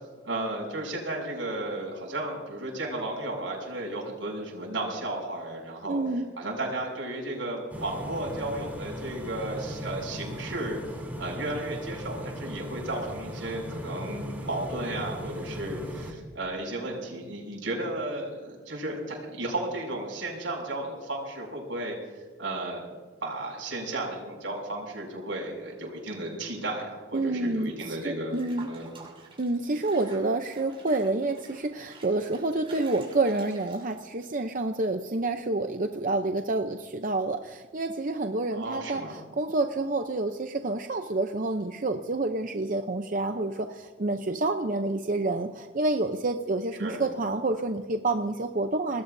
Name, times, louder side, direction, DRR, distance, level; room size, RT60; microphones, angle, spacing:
voice 1, 0.2-10.8 11.2-22.8 23.2-28.4 28.6-28.9 38.5-39.2 46.8-47.0, right 2 dB, 85° right, 0 dB, 6.8 m, -34 dB
voice 2, 5.9-6.3 27.1-27.7 28.0-28.7 29.4-39.0 39.4-49.0, right 2 dB, 45° right, 5 dB, 0.7 m, -28 dB
sound 1, 7.7-16.1, equal, 10° right, 3.7 m, -38 dB
Water / Bathtub (filling or washing), 28.3-34.2, right 4 dB, 30° right, 6.5 m, -50 dB
26.5 x 20.0 x 2.7 m, 1.4 s
head